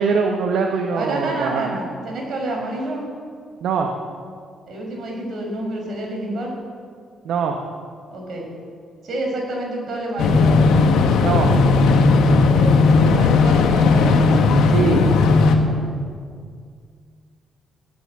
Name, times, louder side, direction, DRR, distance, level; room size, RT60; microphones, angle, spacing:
voice 1, 0.0-1.7 3.6-3.9 7.2-7.6 11.2-11.6 14.6-15.0, right 5 dB, 75° right, 3 dB, 1.2 m, -22 dB
voice 2, 0.9-3.0 4.7-6.5 8.1-8.5 9.0-10.6 12.3-12.8 13.1-14.1, right 1 dB, 55° right, 0 dB, 5.5 m, -28 dB
sound 1, 10.2-15.6, left 4 dB, 85° left, 1.6 m, -15 dB
16.0 x 11.0 x 7.4 m, 2.1 s
cardioid pair, 90°, 0 cm